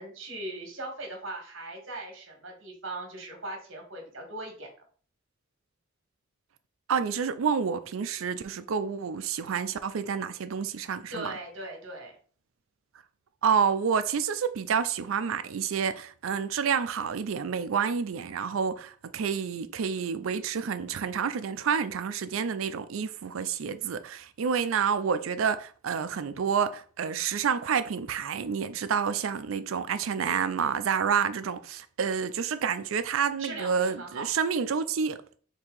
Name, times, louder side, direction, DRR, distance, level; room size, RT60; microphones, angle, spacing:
voice 1, 0.0-4.7 11.1-12.1 33.4-34.3, right 2 dB, 70° right, 1.8 m, -39 dB
voice 2, 6.9-11.3 13.4-35.2, right 6 dB, 90° right, 0.4 m, -29 dB
4.5 x 2.8 x 3.8 m
head